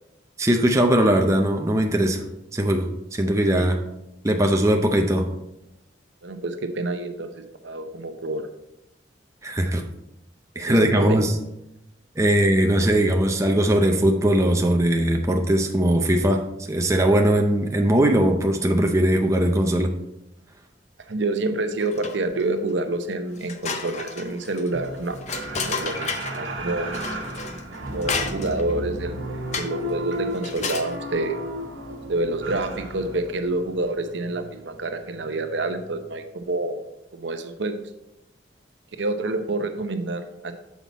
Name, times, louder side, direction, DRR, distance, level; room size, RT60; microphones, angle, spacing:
voice 1, 0.4-2.2 2.5-3.8 4.2-5.3 9.4-9.8 10.6-11.3 12.2-19.9, right 1 dB, 15° right, 3 dB, 0.5 m, -20 dB
voice 2, 6.2-8.5 10.6-11.3 21.1-25.2 25.5-26.9 27.9-29.2 29.5-31.4 32.1-36.8 37.1-37.8 39.0-40.5, right 2 dB, 70° right, 7 dB, 0.7 m, -28 dB
sound 1, 21.8-22.4 22.9-23.0 23.4-26.5 26.9-28.7 29.5-29.9 30.3-31.0, left 5 dB, 35° left, 0.6 m, -32 dB
sound 2, 24.7-36.1 36.5-36.6, equal, 85° right, 1.3 m, -34 dB
7.2 x 5.7 x 4.1 m, 0.89 s
head